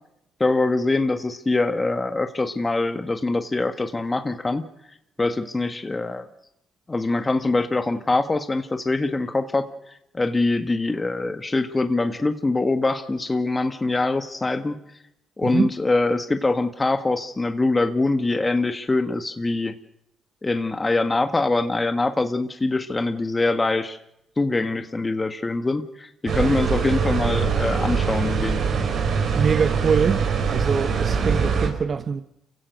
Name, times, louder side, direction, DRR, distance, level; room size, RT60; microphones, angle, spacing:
voice 1, 0.4-4.7 5.2-6.2 6.9-14.8 15.4-19.7 20.4-24.0 24.4-28.6, left 2 dB, 20° left, 1.6 m, -23 dB
sound 1, 26.3-31.7, right 6 dB, 65° right, 4.8 m, -23 dB
voice 2, 29.3-32.2, right 6 dB, 45° right, 1.1 m, -24 dB
28.5 x 16.5 x 6.5 m
cardioid pair, 75°, 0 cm